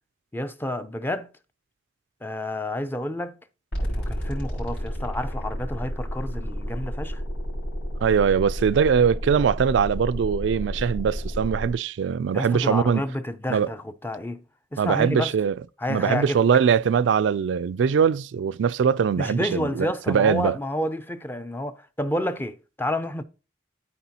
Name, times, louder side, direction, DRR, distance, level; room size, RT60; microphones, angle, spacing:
voice 1, 0.3-1.3 2.2-3.4 3.8-7.2 12.3-14.4 14.7-15.3 15.8-16.4 19.2-23.2, left 1 dB, 10° left, 0.5 m, -29 dB
sound 1, 3.7-11.7, equal, 75° left, 4.2 m, -31 dB
voice 2, 8.0-13.0 13.5-13.7 14.8-15.6 15.9-20.6, right 7 dB, 85° right, 0.3 m, -22 dB
13.0 x 4.4 x 2.8 m
head